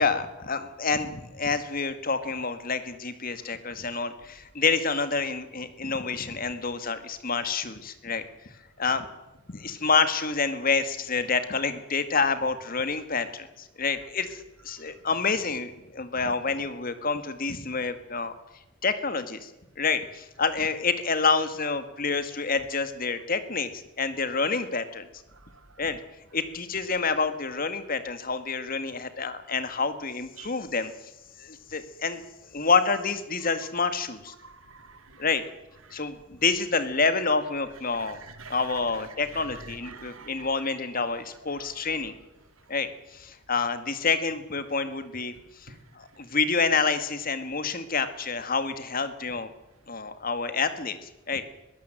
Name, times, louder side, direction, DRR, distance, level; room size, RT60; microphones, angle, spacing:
voice 1, 0.0-8.2 8.8-9.1 9.5-14.4 14.6-18.3 18.8-19.5 19.8-25.1 25.8-26.0 26.3-30.9 31.4-32.2 32.5-34.3 35.2-35.4 35.9-38.2 38.5-42.1 42.7-45.3 46.0-49.5 49.9-51.5, left 4 dB, 45° left, 11 dB, 1.8 m, -28 dB
voice 2, 14.0-14.3 14.7-15.0 25.3-25.8 30.4-30.6 34.3-35.3 35.8-36.1 37.7-42.7 45.3-46.2, right 4 dB, 90° right, 9 dB, 2.5 m, -49 dB
22.0 x 16.0 x 7.7 m, 0.96 s
head